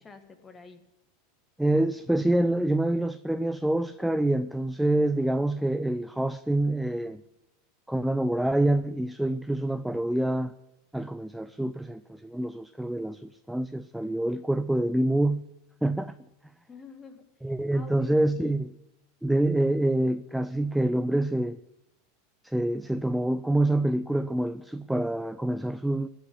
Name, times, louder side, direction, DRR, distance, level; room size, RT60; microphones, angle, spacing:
voice 1, 0.0-0.8 16.7-17.3 17.7-18.6, left 4 dB, 15° left, 1.5 m, -48 dB
voice 2, 1.6-7.2 7.9-10.5 10.9-15.5 15.8-16.2 17.4-18.7 19.2-21.6 22.4-26.1, right 1 dB, ahead, 0.4 m, -26 dB
15.5 x 5.7 x 9.9 m
supercardioid pair, 140°, 0 cm